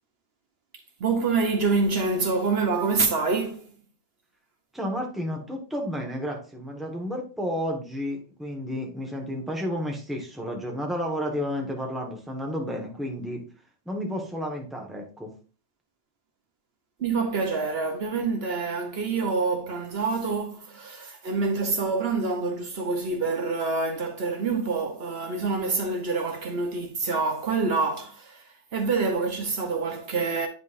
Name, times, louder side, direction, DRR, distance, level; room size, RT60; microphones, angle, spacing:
voice 1, 1.0-3.7 17.0-30.5, right 4 dB, 65° right, 1.2 m, -26 dB
voice 2, 4.7-13.4 13.8-15.3, equal, ahead, 1.4 m, -31 dB
9.3 x 5.2 x 2.6 m
omnidirectional pair, 1.1 m